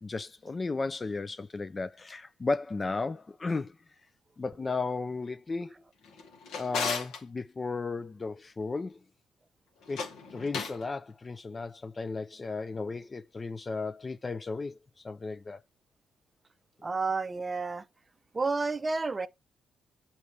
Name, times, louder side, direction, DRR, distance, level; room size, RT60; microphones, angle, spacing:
voice 1, 0.0-3.8 4.4-5.7 6.6-9.0 9.9-14.8 15.0-15.6, left 3 dB, 30° left, 0.3 m, -34 dB
Drawer open or close, 6.0-7.2 9.8-10.8, left 5 dB, 90° left, 1.2 m, -35 dB
voice 2, 16.8-17.8 18.3-19.3, right 3 dB, 25° right, 0.5 m, -30 dB
7.1 x 4.2 x 3.2 m
cardioid pair, 90°, 0 cm